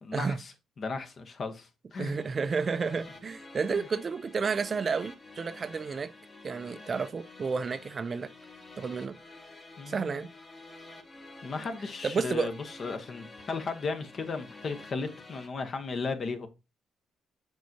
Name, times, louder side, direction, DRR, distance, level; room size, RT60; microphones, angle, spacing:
voice 1, 0.0-2.1 3.7-3.9 9.8-10.3 11.4-16.5, left 4 dB, 45° left, 1.0 m, -35 dB
voice 2, 2.0-6.1 6.4-8.3 8.8-9.2 9.9-10.3 12.0-12.5, right 5 dB, 35° right, 0.5 m, -31 dB
sound 1, 2.1-15.5, left 2 dB, 30° left, 1.3 m, -49 dB
7.3 x 4.6 x 2.8 m
cardioid pair, 110°, 0 cm